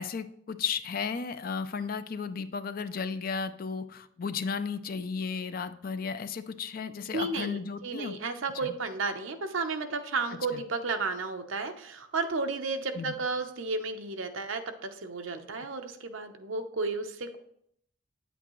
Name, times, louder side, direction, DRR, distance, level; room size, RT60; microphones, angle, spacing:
voice 1, 0.0-8.2 8.6-8.7 10.5-10.6 13.0-13.2, left 5 dB, 45° left, 11 dB, 0.4 m, -34 dB
voice 2, 7.1-17.4, right 3 dB, 70° right, 7 dB, 0.8 m, -33 dB
8.9 x 8.1 x 3.1 m, 0.71 s
head